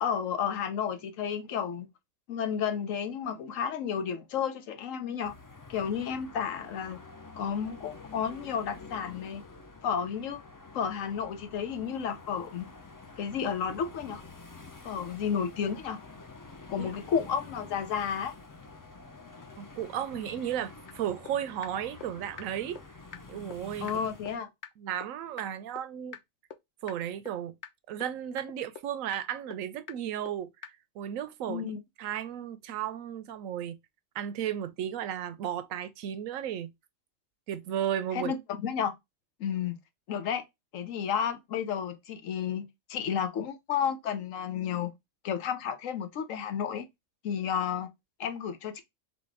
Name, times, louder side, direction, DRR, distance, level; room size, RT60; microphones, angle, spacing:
voice 1, 0.0-1.9 2.3-5.3 5.7-7.0 7.4-9.4 9.8-10.4 10.7-12.7 13.2-14.2 14.8-16.0 16.7-18.4 23.8-24.5 31.5-31.8 38.1-38.9 39.4-39.8 40.1-40.4 40.7-44.9 45.2-46.9 47.2-47.9 48.2-48.8, left 7 dB, 80° left, 1.1 m, -32 dB
sound 1, 5.2-24.4, left 3 dB, 30° left, 0.4 m, -48 dB
voice 2, 19.6-22.8 23.3-24.0 24.8-26.2 26.8-27.5 27.9-30.5 31.0-31.6 32.0-33.8 34.1-36.7 37.5-38.3, right 10 dB, 80° right, 1.0 m, -34 dB
sound 2, 20.9-21.0 21.3-21.4 21.6-21.7 22.0-22.1 22.4-22.5 22.8-22.9 23.1-23.2 23.5-23.6 23.9-24.0 24.3-24.4 24.6-24.7 25.0-25.1 25.4-25.5 25.8-25.9 26.1-26.2 26.5-26.6 26.9-27.0 27.3-27.4 27.6-27.7 28.0-28.1 28.4-28.5 28.8-28.9 29.1-29.2 29.5-29.6 29.9-30.0 30.3-30.4 30.6-30.7, left 9 dB, 65° left, 0.8 m, -42 dB
4.0 x 3.0 x 3.4 m
omnidirectional pair, 1.4 m